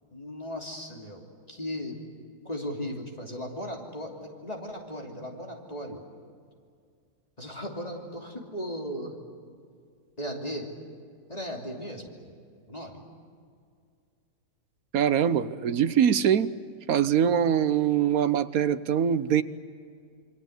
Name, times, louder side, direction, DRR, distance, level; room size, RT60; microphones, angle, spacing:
voice 1, 0.1-2.0 2.4-6.0 7.4-9.1 10.2-10.7 11.3-12.1 12.7-13.0, equal, 20° left, 0 dB, 3.1 m, -37 dB
voice 2, 14.9-16.5 16.9-19.4, right 9 dB, 65° right, 13 dB, 1.2 m, -23 dB
28.0 x 23.5 x 8.1 m, 2.2 s
omnidirectional pair, 1.8 m